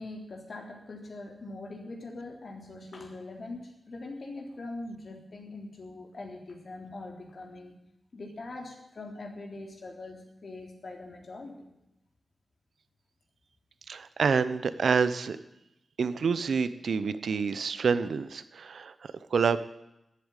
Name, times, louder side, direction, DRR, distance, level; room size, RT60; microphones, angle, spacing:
voice 1, 0.0-7.8 8.1-11.7, left 2 dB, 55° left, 1 dB, 3.5 m, -42 dB
voice 2, 13.9-15.4 16.0-18.9 19.3-19.6, right 5 dB, 80° right, 14 dB, 0.8 m, -27 dB
13.0 x 8.6 x 9.8 m, 0.89 s
wide cardioid pair, 100°, 0 cm